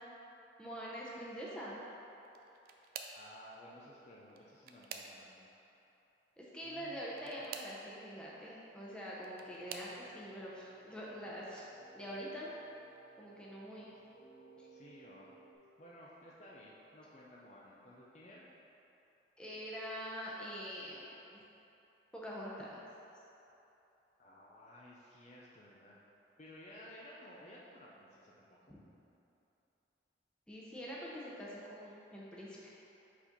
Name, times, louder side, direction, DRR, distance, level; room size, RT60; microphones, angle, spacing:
voice 1, 0.6-1.8 6.4-11.6 11.9-12.5 13.2-13.9 14.6-14.7 19.4-21.4 22.1-22.9 28.7-28.8 30.5-32.7, equal, 5° left, -6 dB, 0.8 m, -45 dB
sound 1, 2.2-3.3 4.2-5.5 7.1-7.8 8.9-10.0 10.7-11.1 11.5-11.6 13.0-13.1, right 6 dB, 50° right, 0.4 m, -49 dB
voice 2, 3.1-5.5 6.6-7.6 14.7-15.3 15.8-18.5 24.2-26.0 26.4-28.7, left 1 dB, 35° left, -5 dB, 0.5 m, -56 dB
sound 2, 9.4-15.5, right 5 dB, 90° left, 1.5 m, -61 dB
5.0 x 4.3 x 5.2 m, 3.0 s
head